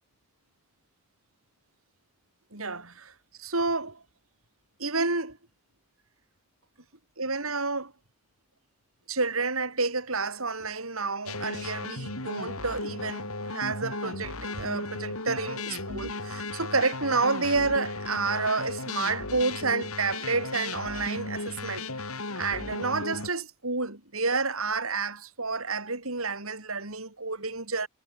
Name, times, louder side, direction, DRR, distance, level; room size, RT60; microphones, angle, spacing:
voice 1, 2.5-3.1 3.4-4.0 4.8-5.4 7.2-7.9 9.1-21.8 22.3-27.9, right 3 dB, 75° right, 6.6 m, -30 dB
sound 1, 11.3-23.3, left 3 dB, 90° left, 6.8 m, -35 dB
head